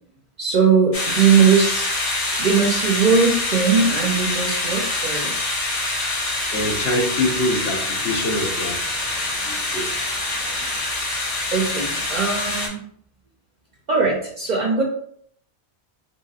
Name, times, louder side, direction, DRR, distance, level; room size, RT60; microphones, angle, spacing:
voice 1, 0.4-5.4 10.6-10.8 11.5-12.9 13.9-14.8, right 5 dB, 60° right, -1 dB, 0.5 m, -20 dB
sound 1, 0.9-12.7, left 2 dB, 40° left, 0.6 m, -25 dB
voice 2, 6.5-8.8 9.4-9.9, left 1 dB, 65° left, 1 dB, 0.9 m, -24 dB
3.0 x 2.8 x 2.3 m, 0.65 s
omnidirectional pair, 1.2 m